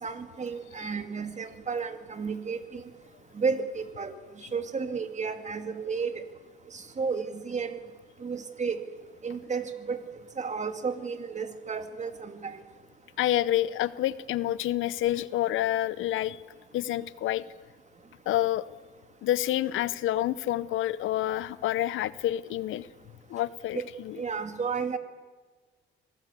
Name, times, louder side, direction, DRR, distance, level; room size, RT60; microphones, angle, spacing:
voice 1, 0.0-2.8 3.3-4.2 4.5-6.2 6.7-7.8 8.2-8.8 9.2-10.0 10.4-12.6 23.7-23.9 24.2-25.0, right 5 dB, 35° right, 9 dB, 2.3 m, -32 dB
voice 2, 13.2-16.4 16.7-17.4 18.3-18.6 19.2-22.9 23.3-24.2, left 13 dB, 85° left, 18 dB, 0.8 m, -28 dB
25.5 x 17.5 x 8.2 m, 1.4 s
cardioid pair, 90°, 20 cm